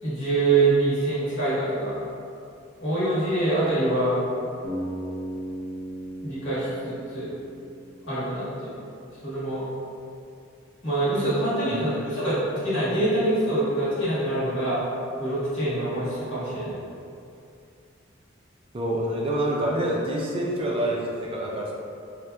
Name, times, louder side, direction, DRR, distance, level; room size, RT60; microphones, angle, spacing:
voice 1, 0.0-2.0 2.8-4.2 6.2-7.3 8.0-8.8 9.2-9.6 10.8-14.8 15.2-16.8, right 2 dB, 70° left, -10 dB, 1.3 m, -25 dB
Bass guitar, 4.6-8.7, right 1 dB, 45° left, 0.5 m, -36 dB
voice 2, 18.7-21.7, right 1 dB, 30° right, -3 dB, 0.4 m, -27 dB
4.2 x 2.5 x 2.3 m, 2.5 s
head